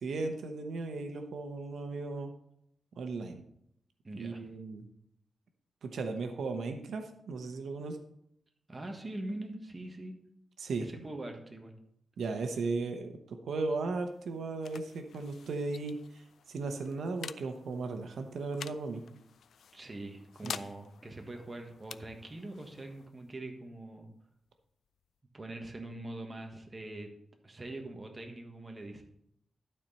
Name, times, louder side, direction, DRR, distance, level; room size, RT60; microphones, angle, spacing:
voice 1, 0.0-2.3 3.0-3.4 4.2-4.9 5.8-8.0 10.6-10.9 12.2-19.0 20.4-20.5, right 3 dB, 85° right, 6 dB, 0.9 m, -36 dB
voice 2, 4.0-4.4 8.7-10.2 10.8-11.7 19.7-24.1 25.3-27.1 27.4-29.0, right 2 dB, 25° right, 3 dB, 1.3 m, -43 dB
sound 1, 13.8-25.2, left 7 dB, 80° left, 0.3 m, -50 dB
12.0 x 4.4 x 5.4 m, 0.73 s
wide cardioid pair, 135°, 0 cm